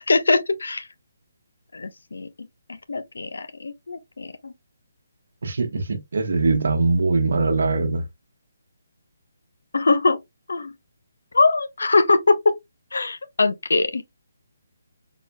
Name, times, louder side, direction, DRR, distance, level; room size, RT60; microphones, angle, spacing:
voice 1, 0.1-0.9 1.7-4.5 9.7-10.2 10.5-10.7 11.3-12.4 12.9-14.0, left 3 dB, 85° left, 0.8 m, -22 dB
voice 2, 5.4-8.0, right 3 dB, 75° right, 1.1 m, -22 dB
4.2 x 4.1 x 2.2 m
hypercardioid pair, 155°, 0 cm